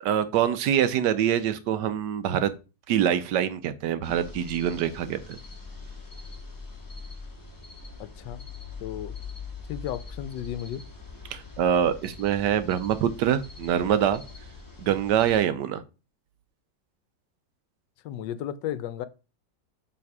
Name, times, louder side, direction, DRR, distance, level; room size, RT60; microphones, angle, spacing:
voice 1, 0.0-2.5 2.9-5.4 11.3-14.2 14.8-15.8, right 9 dB, 75° right, 1.2 m, -25 dB
sound 1, 4.0-15.4, left 4 dB, 15° left, 0.9 m, -43 dB
voice 2, 8.0-8.4 8.8-9.1 9.7-10.8 18.0-19.1, left 11 dB, 75° left, 1.2 m, -34 dB
7.1 x 3.5 x 4.7 m
omnidirectional pair, 2.0 m